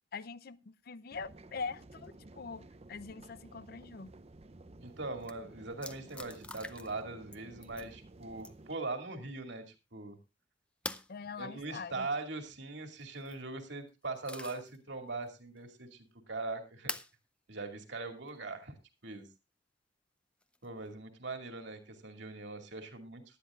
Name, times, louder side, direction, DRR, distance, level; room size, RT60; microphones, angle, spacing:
voice 1, 0.1-4.1 11.1-12.1, left 4 dB, 55° left, 0.5 m, -43 dB
sound 1, 1.1-8.7, right 2 dB, 35° right, 0.6 m, -54 dB
voice 2, 4.8-9.7 9.9-10.2 11.4-16.9 17.5-18.7 19.0-19.3 20.6-23.4, right 3 dB, 65° right, 2.4 m, -41 dB
sound 2, 4.9-5.0 5.2-5.3 5.8-7.0 7.3-7.9 8.4-8.7 10.8-11.1 13.0-13.4 13.9-14.8 15.2-15.3 16.9-17.1 18.3-18.4 20.4-20.9, left 2 dB, 5° left, 0.6 m, -44 dB
18.5 x 12.0 x 2.4 m
head